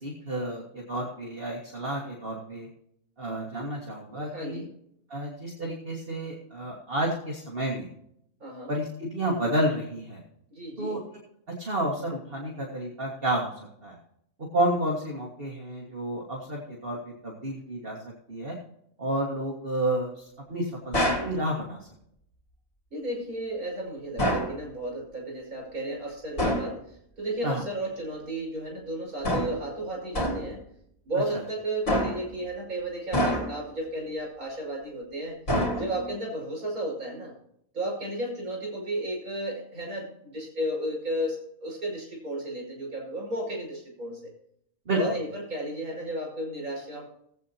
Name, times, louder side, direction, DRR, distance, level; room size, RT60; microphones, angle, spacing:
voice 1, 0.0-2.7 3.2-4.6 5.1-7.9 8.7-10.2 10.8-11.0 11.5-14.0 14.5-18.6 19.0-21.9 27.4-27.6 44.9-45.0, right 1 dB, 40° right, -3 dB, 2.0 m, -30 dB
voice 2, 4.1-4.7 8.4-8.8 10.5-11.0 22.9-30.7 31.1-35.4 35.8-37.3 37.7-44.3 44.9-47.1, right 1 dB, 80° right, -2 dB, 5.7 m, -33 dB
sound 1, 20.9-21.4 24.2-24.6 26.4-26.8 29.2-29.7 30.1-30.5 31.9-32.3 33.1-33.7 35.5-36.1, equal, 60° left, 3.3 m, -27 dB
19.0 x 8.4 x 2.9 m, 0.72 s
omnidirectional pair, 1.5 m